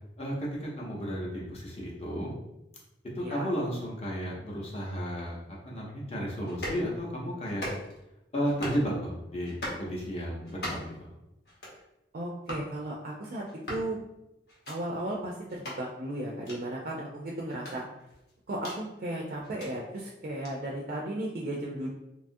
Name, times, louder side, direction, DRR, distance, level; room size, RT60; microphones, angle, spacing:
voice 1, 0.2-2.3 3.1-5.4 5.6-7.6 8.3-11.1, equal, 35° left, -3 dB, 0.6 m, -33 dB
voice 2, 3.2-3.5 12.1-14.0 14.7-17.8 18.5-21.9, right 1 dB, 50° right, -2 dB, 0.3 m, -35 dB
sound 1, 6.5-6.8 7.4-8.0 8.4-8.9 9.4-9.8 10.4-11.0 11.4-11.8 12.4-12.7 13.4-13.9 14.5-14.8 15.5-15.8 16.4-16.6 17.5-18.8 19.4-19.7 20.4-20.5, equal, 60° left, 0.9 m, -39 dB
2.8 x 2.3 x 2.6 m, 0.89 s
head